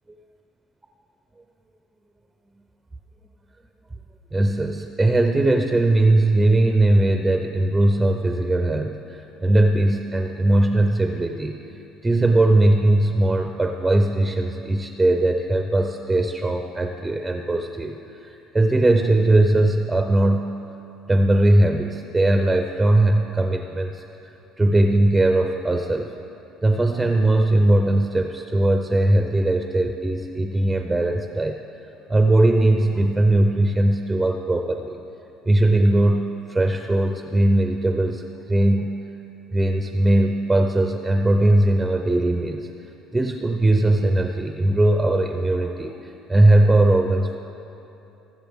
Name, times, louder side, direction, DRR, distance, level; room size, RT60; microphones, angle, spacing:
voice 1, 4.3-11.6 12.0-20.5 21.1-24.0 24.6-26.1 26.6-35.0 35.5-39.0 39.5-42.7 43.1-47.4, right 1 dB, 10° right, 4 dB, 0.5 m, -19 dB
19.5 x 7.3 x 3.5 m, 3.0 s
cardioid pair, 145°, 0 cm